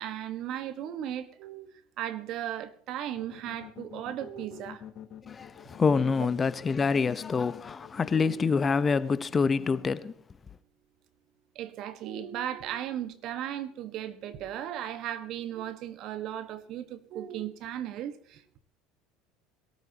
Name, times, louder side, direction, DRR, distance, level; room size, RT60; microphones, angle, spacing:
voice 1, 0.0-4.8 6.2-6.3 8.1-8.3 11.5-18.6, right 11 dB, 55° right, 1.4 m, -36 dB
sound 1, 3.2-8.7, left 10 dB, 50° left, 1.6 m, -46 dB
voice 2, 5.2-10.1, left 5 dB, 25° left, 0.9 m, -26 dB
21.5 x 13.0 x 2.9 m
hypercardioid pair, 80°, 0 cm